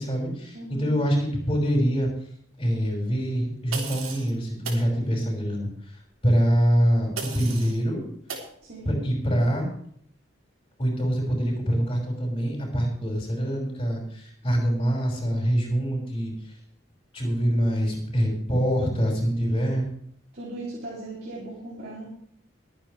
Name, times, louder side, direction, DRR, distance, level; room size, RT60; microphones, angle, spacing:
voice 1, 0.0-2.1 2.6-5.7 6.2-8.0 8.8-9.7 10.8-16.3 17.1-19.9, equal, 25° left, -2 dB, 5.8 m, -25 dB
voice 2, 0.5-0.9 8.6-9.0 20.3-22.1, right 2 dB, 50° right, -5 dB, 3.4 m, -38 dB
sound 1, 3.7-4.3 4.6-4.9 7.2-7.8 8.3-8.5, right 5 dB, 90° right, 3.7 m, -35 dB
22.5 x 9.1 x 3.5 m, 0.65 s
head